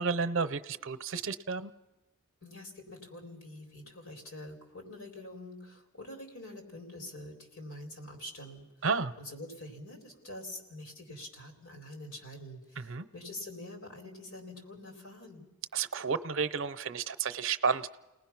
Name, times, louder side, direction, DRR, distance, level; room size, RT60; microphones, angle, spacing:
voice 1, 0.0-1.7 8.8-9.1 12.8-13.1 15.7-17.9, right 5 dB, 60° right, 12 dB, 0.7 m, -31 dB
voice 2, 2.4-8.6 9.2-15.4, left 1 dB, 80° left, 3 dB, 4.0 m, -46 dB
30.0 x 19.0 x 6.0 m, 1.0 s
head